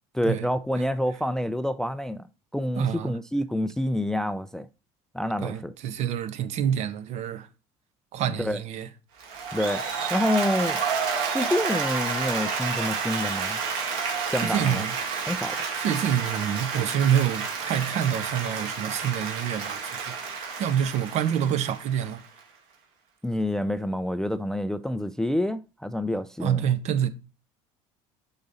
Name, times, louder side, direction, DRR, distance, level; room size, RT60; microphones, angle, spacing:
voice 1, 0.1-2.2 2.5-4.7 5.1-5.7 8.4-8.6 9.5-9.8 10.1-10.8 11.3-13.6 14.3-14.8 15.3-15.7 23.2-26.7, left 1 dB, 5° left, 0.3 m, -27 dB
voice 2, 2.8-3.2 5.4-7.5 8.1-8.9 14.4-14.9 15.8-20.2 20.6-22.2 26.4-27.1, right 9 dB, 55° right, 0.7 m, -27 dB
Applause, 9.2-22.4, right 5 dB, 80° right, 2.1 m, -30 dB
6.7 x 4.0 x 4.1 m
supercardioid pair, 105°, 14 cm